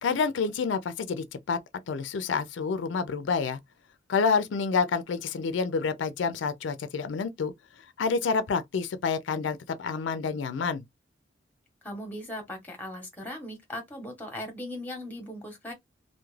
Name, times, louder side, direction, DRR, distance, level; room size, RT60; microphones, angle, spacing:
voice 1, 0.0-1.6 1.9-3.6 4.1-7.5 8.0-10.8, left 5 dB, 80° left, 0.4 m, -28 dB
voice 2, 11.8-15.7, left 1 dB, 10° left, 0.8 m, -38 dB
2.3 x 2.1 x 3.1 m
head